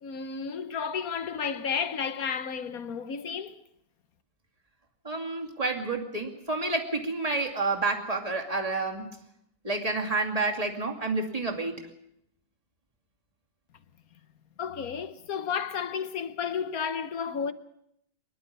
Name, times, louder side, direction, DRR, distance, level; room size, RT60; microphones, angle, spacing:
voice 1, 0.0-3.6 14.6-17.5, left 6 dB, 60° left, 1.4 m, -32 dB
voice 2, 5.0-9.1 9.6-11.8, right 3 dB, 20° right, 2.5 m, -29 dB
24.5 x 11.5 x 9.8 m
omnidirectional pair, 1.8 m